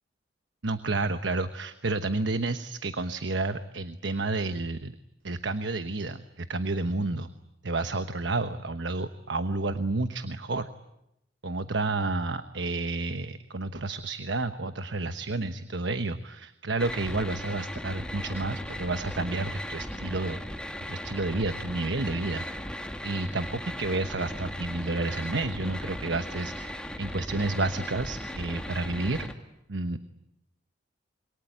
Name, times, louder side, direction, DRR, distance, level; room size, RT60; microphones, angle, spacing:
voice 1, 0.6-4.9 5.2-7.3 7.6-10.7 11.4-20.4 20.9-22.4 23.0-29.3 29.7-30.0, right 2 dB, 85° right, 10 dB, 1.1 m, -30 dB
sound 1, 16.8-29.3, left 1 dB, 5° left, 2.1 m, -37 dB
27.5 x 23.5 x 9.3 m, 0.84 s
head